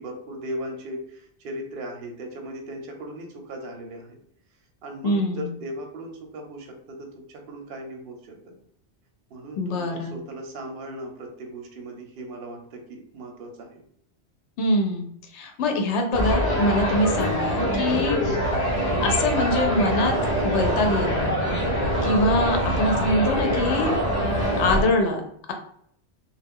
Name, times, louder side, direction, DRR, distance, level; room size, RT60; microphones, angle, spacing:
voice 1, 0.0-4.2 4.8-8.5 9.3-13.8, right 1 dB, 60° right, 2 dB, 0.7 m, -38 dB
voice 2, 5.0-5.5 9.6-10.2 14.6-15.1 15.3-18.2 19.0-21.4 22.0-23.9 24.6-25.2, left 1 dB, 80° left, 4 dB, 0.9 m, -24 dB
sound 1, 16.1-24.8, equal, 35° left, 0.9 m, -24 dB
2.3 x 2.0 x 3.5 m, 0.66 s
omnidirectional pair, 1.2 m